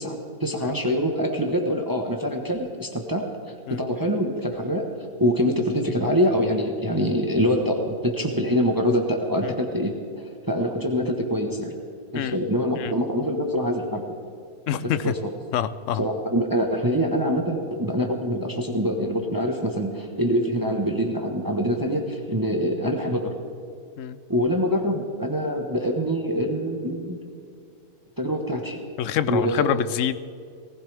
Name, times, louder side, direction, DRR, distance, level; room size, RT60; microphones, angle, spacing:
voice 1, 0.0-3.4 3.7-11.7 12.1-14.1 14.9-15.3 16.0-23.4 24.3-27.2 28.2-28.8 29.3-29.8, equal, 15° right, 3 dB, 1.0 m, -25 dB
voice 2, 14.7-15.1 15.5-16.0 24.0-24.2 29.0-30.2, left 10 dB, 65° left, 14 dB, 0.8 m, -26 dB
19.0 x 15.5 x 3.4 m, 2.3 s
omnidirectional pair, 1.6 m